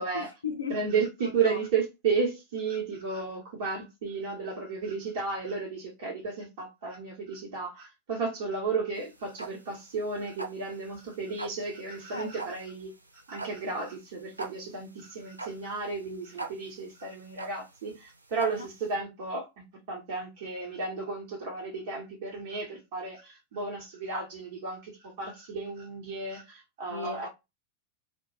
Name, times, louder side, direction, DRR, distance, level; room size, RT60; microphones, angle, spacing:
voice 1, 0.1-0.8 1.4-1.6 12.1-12.3 18.6-18.7 26.9-27.3, left 5 dB, 75° left, 0.4 m, -36 dB
voice 2, 0.7-12.9 13.3-19.5 19.9-27.3, right 4 dB, 55° right, 0.9 m, -33 dB
sound 1, 8.9-18.9, right 3 dB, 80° right, 0.3 m, -42 dB
2.2 x 2.1 x 3.0 m
figure-of-eight pair, 90°, 0 cm